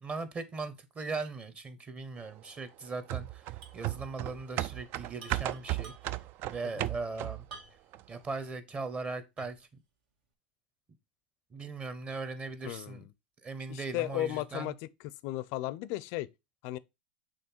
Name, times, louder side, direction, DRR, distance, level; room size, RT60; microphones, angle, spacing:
voice 1, 0.0-6.2 6.5-7.4 8.1-9.7 11.5-13.0 13.4-14.7, right 3 dB, 25° right, 1.0 m, -39 dB
sound 1, 3.1-7.6 7.9-8.0, right 15 dB, 45° right, 0.4 m, -35 dB
sound 2, 3.6-3.9 4.1-4.2 5.1-6.3 7.5-8.0 8.5-8.6 9.4-9.7, right 3 dB, 70° right, 1.7 m, -50 dB
voice 2, 12.6-13.1 13.7-16.3 16.6-16.8, left 15 dB, 55° left, 0.5 m, -35 dB
6.4 x 3.3 x 4.3 m
hypercardioid pair, 105°, 5 cm